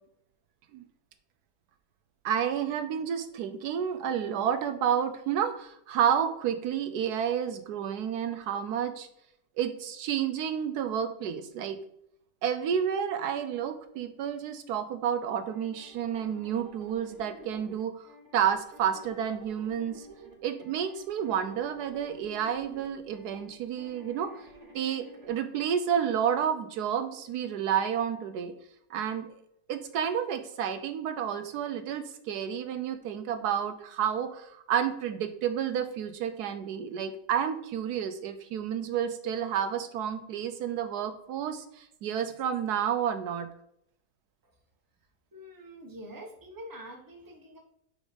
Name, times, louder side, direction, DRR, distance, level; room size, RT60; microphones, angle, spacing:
voice 1, 2.2-9.1 9.6-11.8 12.4-20.1 20.4-24.3 24.7-28.5 28.9-29.4 29.7-43.5, right 8 dB, 75° right, 9 dB, 1.1 m, -30 dB
sound 1, 15.5-25.4, right 1 dB, 45° right, 1.6 m, -51 dB
voice 2, 45.3-47.6, equal, 15° right, 2 dB, 1.0 m, -45 dB
5.3 x 5.0 x 5.0 m, 0.75 s
omnidirectional pair, 1.8 m